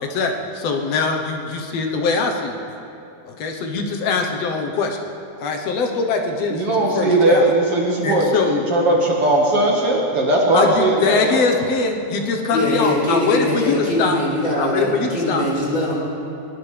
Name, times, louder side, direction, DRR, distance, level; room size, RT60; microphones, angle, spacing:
voice 1, 0.0-2.7 3.2-5.0 5.4-7.4 8.0-8.5 10.5-14.2 14.6-15.5, left 4 dB, 75° left, 2 dB, 1.5 m, -22 dB
voice 2, 6.5-11.4, right 1 dB, 50° right, -3 dB, 2.0 m, -18 dB
voice 3, 12.5-15.9, left 1 dB, 20° left, -5 dB, 4.8 m, -21 dB
22.5 x 18.0 x 3.4 m, 2.6 s
omnidirectional pair, 4.5 m